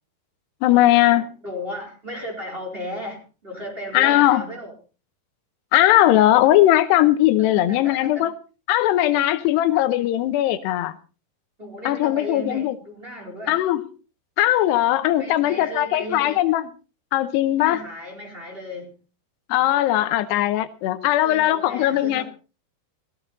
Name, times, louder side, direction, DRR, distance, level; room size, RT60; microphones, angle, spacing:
voice 1, 0.6-1.3 3.9-4.5 5.7-8.3 8.7-11.0 11.9-12.8 13.5-13.9 14.4-16.7 17.1-17.8 19.5-22.2, left 14 dB, 85° left, 3.0 m, -19 dB
voice 2, 1.4-4.7 7.4-8.3 11.6-13.6 15.2-16.4 17.6-18.9 21.2-22.2, left 1 dB, 15° right, 4.1 m, -35 dB
15.5 x 15.0 x 4.0 m
omnidirectional pair, 4.7 m